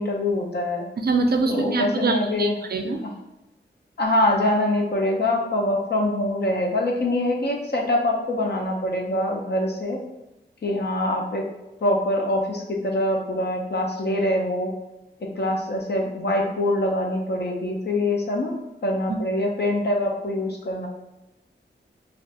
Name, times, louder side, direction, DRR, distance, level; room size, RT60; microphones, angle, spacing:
voice 1, 0.0-0.9 1.5-2.5 3.0-3.1 4.0-10.0 10.6-11.4 11.8-14.7 15.2-20.9, left 1 dB, 55° left, 1 dB, 0.6 m, -24 dB
voice 2, 1.0-3.0 19.1-19.2, right 3 dB, 50° right, 5 dB, 0.4 m, -24 dB
3.3 x 2.5 x 2.5 m, 0.97 s
wide cardioid pair, 75°, 20 cm